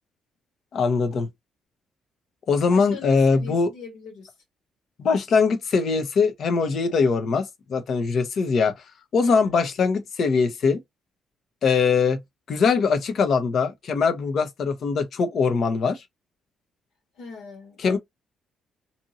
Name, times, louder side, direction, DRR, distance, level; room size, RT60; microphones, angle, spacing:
voice 1, 0.7-1.3 2.5-3.7 5.0-8.7 9.1-10.8 11.6-12.2 12.5-16.0 17.8-18.0, left 5 dB, 60° left, 0.8 m, -22 dB
voice 2, 2.7-4.3 9.2-9.4 17.2-18.0, left 4 dB, 85° left, 1.5 m, -40 dB
2.7 x 2.6 x 2.7 m
supercardioid pair, 70°, 0 cm